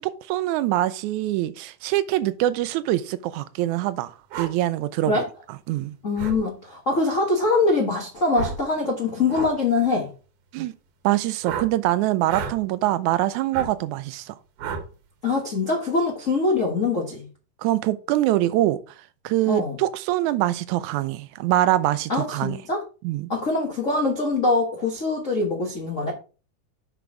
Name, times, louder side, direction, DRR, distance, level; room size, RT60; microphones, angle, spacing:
voice 1, 0.0-4.1 4.4-5.2 5.7-5.9 10.5-10.7 11.0-14.3 17.6-18.8 19.2-22.6 23.0-23.3, right 14 dB, 85° right, 1.7 m, -24 dB
sound 1, 4.3-4.5 6.2-6.4 8.3-8.6 9.3-9.5 11.4-11.7 12.3-12.6 13.5-13.7 14.6-14.9, right 6 dB, 70° right, 2.5 m, -31 dB
voice 2, 6.0-10.1 15.2-17.3 19.5-19.8 22.1-22.8 23.3-26.1, left 3 dB, 70° left, 0.7 m, -23 dB
6.8 x 6.1 x 4.8 m
omnidirectional pair, 4.0 m